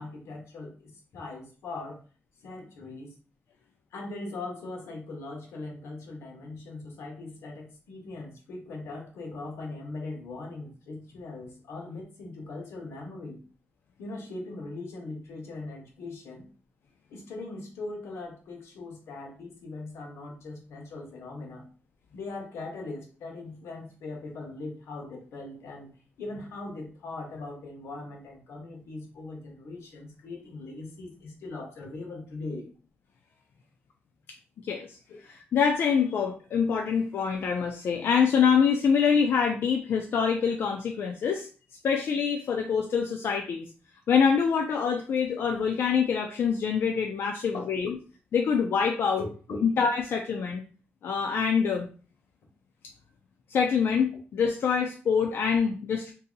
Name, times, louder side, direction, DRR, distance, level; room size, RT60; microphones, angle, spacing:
voice 1, 0.0-2.0 2.4-3.1 3.9-13.4 14.0-16.4 17.1-21.7 22.1-25.9 26.2-32.7 35.1-35.2 47.3-47.7 49.2-49.7, left 2 dB, 85° left, 1 dB, 1.1 m, -40 dB
voice 2, 34.6-35.0 35.5-41.5 41.8-43.7 44.1-47.9 48.3-49.2 49.6-50.6 51.0-51.9 53.5-56.1, left 6 dB, 60° left, 2 dB, 0.4 m, -25 dB
2.7 x 2.6 x 3.9 m, 0.37 s
wide cardioid pair, 145°, 4 cm